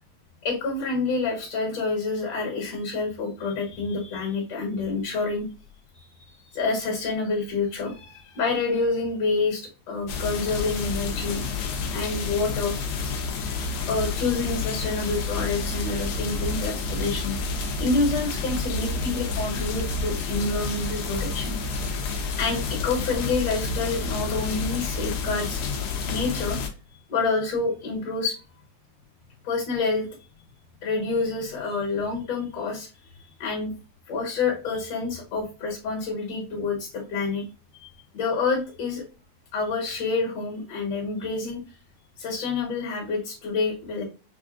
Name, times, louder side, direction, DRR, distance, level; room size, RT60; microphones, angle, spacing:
voice 1, 0.4-5.5 5.9-11.4 11.9-12.8 13.4-21.5 22.4-25.6 26.1-26.6 27.1-28.4 29.4-30.1 30.8-32.9 33.4-33.7 34.1-37.4 37.7-39.0 39.5-41.6 42.2-44.0, left 3 dB, 55° left, -1 dB, 2.4 m, -28 dB
sound 1, 10.1-26.7, left 3 dB, 75° left, 2.2 m, -29 dB
6.9 x 2.5 x 2.4 m, 0.33 s
omnidirectional pair, 3.8 m